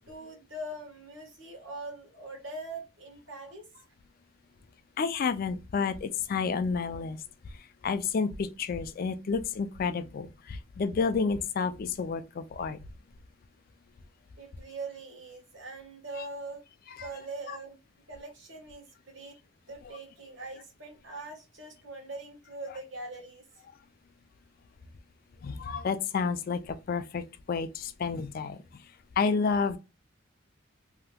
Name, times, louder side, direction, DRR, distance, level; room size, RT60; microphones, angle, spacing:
voice 1, 0.1-3.7 14.4-16.6 17.0-17.8 18.1-19.4 19.7-23.7, right 2 dB, 60° right, 1.3 m, -42 dB
voice 2, 5.0-7.2 7.5-12.8 16.9-17.1 17.5-17.6 25.4-28.6 29.2-29.8, left 5 dB, 45° left, 0.3 m, -30 dB
3.4 x 2.8 x 2.2 m
head